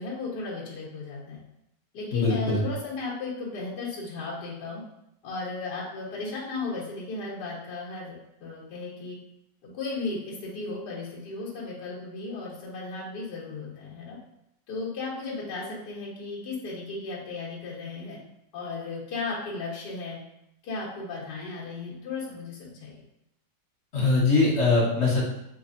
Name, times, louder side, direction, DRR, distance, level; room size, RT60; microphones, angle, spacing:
voice 1, 0.0-1.4 1.9-4.8 5.2-9.2 9.6-14.2 14.7-18.2 18.5-20.2 20.6-22.9, left 3 dB, 70° left, -6 dB, 1.6 m, -35 dB
voice 2, 2.1-2.6 23.9-25.3, left 3 dB, 40° left, -7 dB, 1.6 m, -22 dB
3.9 x 3.1 x 2.6 m, 0.82 s
omnidirectional pair, 1.9 m